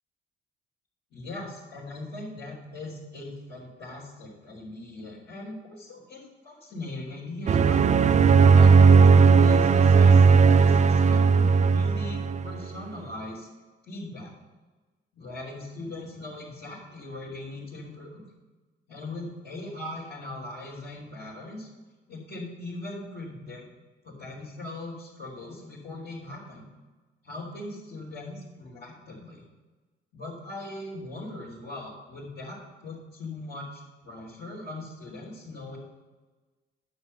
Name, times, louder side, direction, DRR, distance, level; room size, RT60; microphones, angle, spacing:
voice 1, 1.1-7.8 8.5-13.5 13.8-14.3 15.1-18.2 18.9-21.7 22.1-23.6 24.0-26.7 27.2-29.4 30.1-35.8, left 2 dB, 65° left, -8 dB, 3.6 m, -39 dB
sound 1, 7.5-12.6, right 5 dB, 35° right, 0.5 m, -17 dB
9.4 x 7.0 x 6.7 m, 1.2 s
cardioid pair, 90°, 20 cm